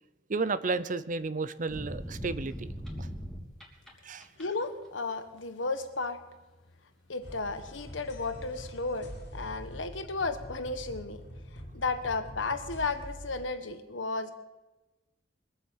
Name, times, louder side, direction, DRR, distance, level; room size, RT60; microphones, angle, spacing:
voice 1, 0.3-2.7 3.0-3.1 4.0-4.3, right 3 dB, 45° right, 14 dB, 0.7 m, -32 dB
sound 1, 1.7-3.9 4.2-4.7, equal, 5° left, 3.1 m, -39 dB
voice 2, 4.4-6.2 7.1-11.2 11.7-14.3, left 3 dB, 90° left, 9 dB, 1.3 m, -33 dB
sound 2, 7.2-13.4, equal, 65° left, 2.7 m, -45 dB
22.5 x 8.2 x 7.4 m, 1.1 s
head